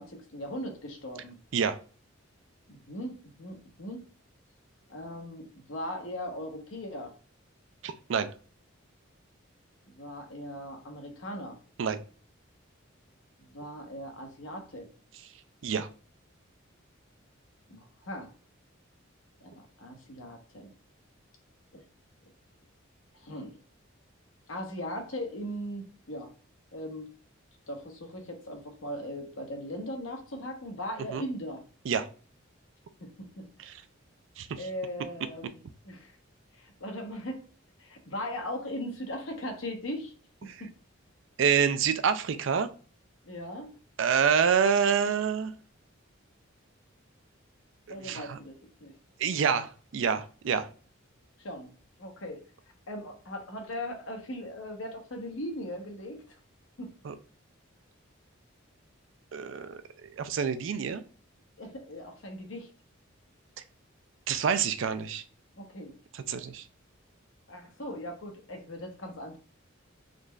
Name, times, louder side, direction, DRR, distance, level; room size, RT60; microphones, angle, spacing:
voice 1, 0.0-1.4 2.7-4.0 4.9-7.1 9.9-11.6 13.4-14.9 17.7-18.3 19.4-20.7 21.7-21.8 23.2-23.6 24.5-26.3 26.7-27.1 27.7-31.6 33.0-33.7 34.6-36.1 36.5-37.4 37.8-40.1 40.4-40.7 43.2-43.7 47.9-48.9 51.4-51.7 52.0-52.4 52.9-56.2 56.8-56.9 61.6-62.7 65.6-65.9 67.5-69.4, equal, 70° left, 1.0 m, -39 dB
voice 2, 7.8-8.3 11.8-12.0 15.6-15.9 31.1-31.2 31.9-32.1 33.6-33.8 34.4-34.6 40.5-40.6 41.4-42.7 44.0-45.5 47.9-48.4 49.2-50.7 57.0-57.1 59.3-59.8 60.2-61.0 64.3-65.2 66.1-66.6, right 7 dB, 65° right, 0.4 m, -27 dB
3.8 x 3.1 x 2.3 m
head